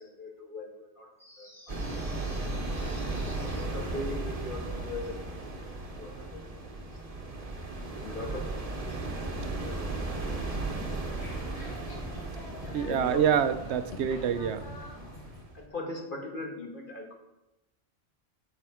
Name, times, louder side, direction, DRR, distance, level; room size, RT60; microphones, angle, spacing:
voice 1, 0.0-1.9 2.2-3.0 3.5-5.2 5.9-6.5 6.8-6.9 7.7-9.3 9.6-10.4 12.6-13.3 15.5-17.2, left 2 dB, 50° left, 1 dB, 1.7 m, -41 dB
sound 1, 1.2-3.6, left 1 dB, ahead, 1.9 m, -51 dB
sound 2, 1.7-15.7, right 2 dB, 35° right, 1.2 m, -36 dB
sound 3, 10.0-15.5, left 2 dB, 75° left, 1.8 m, -45 dB
voice 2, 12.7-14.7, right 8 dB, 80° right, 11 dB, 0.9 m, -26 dB
7.7 x 7.6 x 4.9 m, 0.95 s
omnidirectional pair, 1.1 m